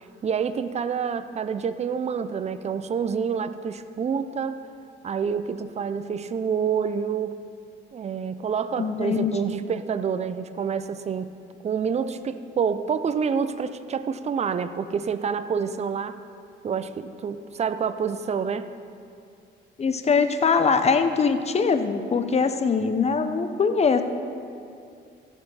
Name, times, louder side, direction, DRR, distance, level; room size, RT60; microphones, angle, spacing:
voice 1, 0.2-4.6 5.0-7.3 7.9-11.3 11.6-16.2 16.6-18.7, right 6 dB, 35° right, 11 dB, 0.5 m, -27 dB
voice 2, 8.8-9.6 19.8-24.0, left 5 dB, 35° left, 9 dB, 0.7 m, -22 dB
15.0 x 5.4 x 5.6 m, 2.4 s
cardioid pair, 90°, 20 cm